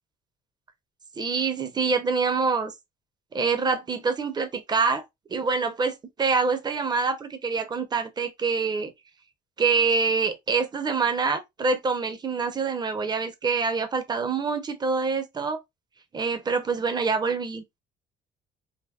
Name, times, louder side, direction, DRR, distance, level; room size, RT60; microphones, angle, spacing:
voice 1, 1.2-2.7 3.3-5.0 5.3-8.9 9.6-15.6 16.1-17.6, right 4 dB, 25° right, 0.6 m, -25 dB
3.4 x 2.2 x 2.2 m
cardioid pair, 110°, 17 cm